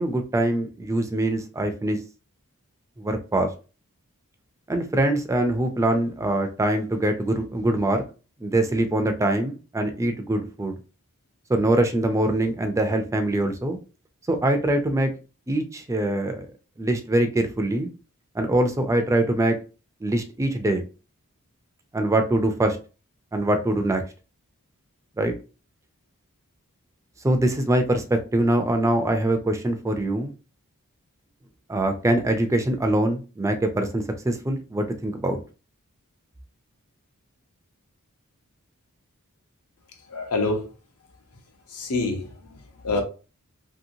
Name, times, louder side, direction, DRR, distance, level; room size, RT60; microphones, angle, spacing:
voice 1, 0.0-2.0 3.0-3.5 4.7-8.0 8.4-10.8 11.5-13.8 14.3-15.1 15.5-16.5 16.8-17.9 18.3-19.6 20.0-20.8 21.9-22.8 23.3-24.0 25.2-25.3 27.2-30.3 31.7-35.4, right 1 dB, 15° right, 0.3 m, -23 dB
voice 2, 40.1-40.7 41.7-43.0, left 3 dB, 80° left, 0.9 m, -27 dB
2.9 x 2.8 x 2.6 m
head